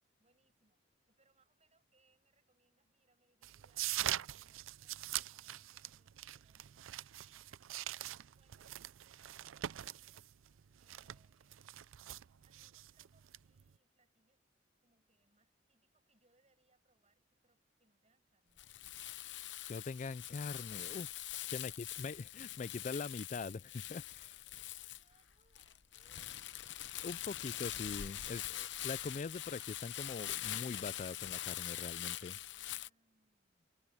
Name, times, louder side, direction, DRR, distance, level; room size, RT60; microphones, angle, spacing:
voice 1, 0.2-7.5 8.4-10.5 10.8-11.7 12.4-14.5 14.8-18.8 21.3-22.1 24.1-26.5 32.5-33.7, right 3 dB, 35° right, 6.9 m, -76 dB
sound 1, 3.4-13.7, right 13 dB, 85° right, 0.5 m, -43 dB
Crumpling crinkling, 18.6-32.9, left 13 dB, 65° left, 0.8 m, -43 dB
voice 2, 19.7-21.1 21.5-21.7 22.0-24.0 27.0-32.4, left 4 dB, 40° left, 0.3 m, -43 dB
head